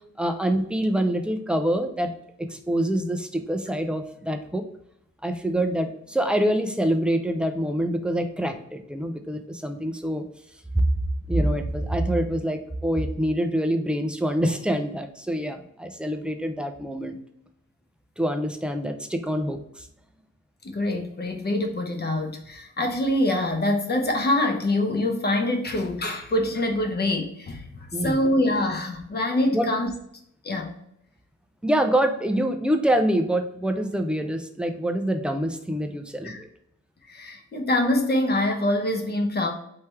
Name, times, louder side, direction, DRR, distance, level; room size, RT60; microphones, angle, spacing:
voice 1, 0.2-2.1 2.4-4.6 5.2-10.2 10.7-17.2 18.2-19.9 27.9-28.3 29.5-29.7 31.6-36.5, right 1 dB, 5° right, 6 dB, 0.4 m, -25 dB
voice 2, 20.6-29.9 30.4-30.7 36.2-36.4 37.1-39.5, left 1 dB, 35° left, 4 dB, 0.8 m, -25 dB
4.4 x 3.3 x 3.4 m, 0.74 s
wide cardioid pair, 165°, 30 cm